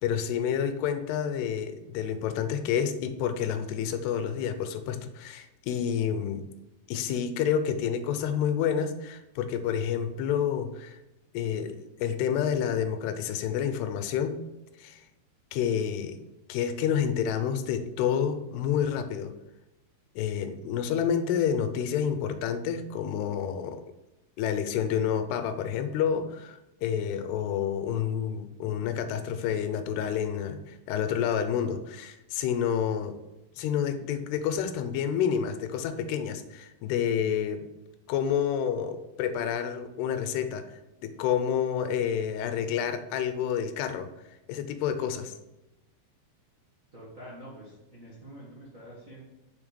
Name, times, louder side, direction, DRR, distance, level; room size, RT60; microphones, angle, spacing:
voice 1, 0.0-6.5 6.9-11.0 11.3-14.4 14.8-15.0 15.5-16.2 16.5-19.4 20.2-23.8 24.4-33.2 33.6-37.7 38.1-44.1 44.5-45.4, left 8 dB, 85° left, 9 dB, 2.8 m, -29 dB
voice 2, 46.9-49.2, equal, 55° right, -6 dB, 0.8 m, -46 dB
7.2 x 6.5 x 5.2 m, 0.96 s
omnidirectional pair, 4.7 m